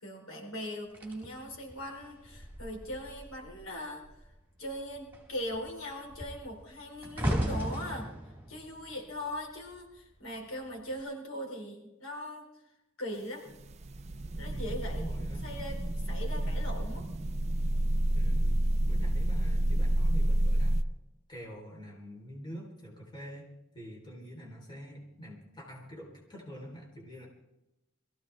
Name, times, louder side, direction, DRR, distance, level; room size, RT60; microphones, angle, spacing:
voice 1, 0.0-4.3 4.6-8.2 8.5-12.5 13.0-13.4 14.4-15.0 15.4-17.1, left 1 dB, 75° left, 1 dB, 4.1 m, -40 dB
sound 1, 0.9-3.7 4.0-4.3 4.7-10.0 10.7-11.0, equal, 10° right, 4.5 m, -37 dB
sound 2, 13.5-20.8, right 1 dB, 30° right, 0.5 m, -29 dB
voice 2, 14.5-15.5 18.1-20.8 21.3-23.5 23.7-27.3, equal, 20° left, -2 dB, 3.8 m, -46 dB
22.5 x 15.5 x 3.5 m, 0.92 s
head